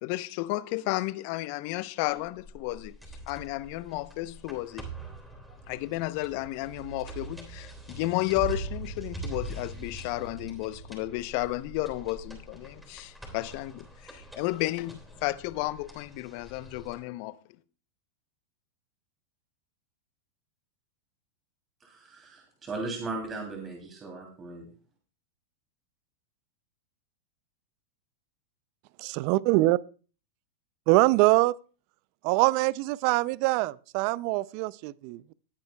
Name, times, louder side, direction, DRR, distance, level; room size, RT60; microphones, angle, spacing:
voice 1, 0.0-2.9 3.3-4.9 5.7-17.4, left 18 dB, 55° left, 0.7 m, -32 dB
sound 1, 2.2-17.0, right 3 dB, 5° right, 3.6 m, -43 dB
voice 2, 21.8-24.6, right 3 dB, 25° right, 2.9 m, -37 dB
voice 3, 29.0-29.8 30.9-31.6 32.2-35.3, right 20 dB, 55° right, 0.4 m, -24 dB
19.0 x 9.3 x 2.3 m
hypercardioid pair, 100°, 0 cm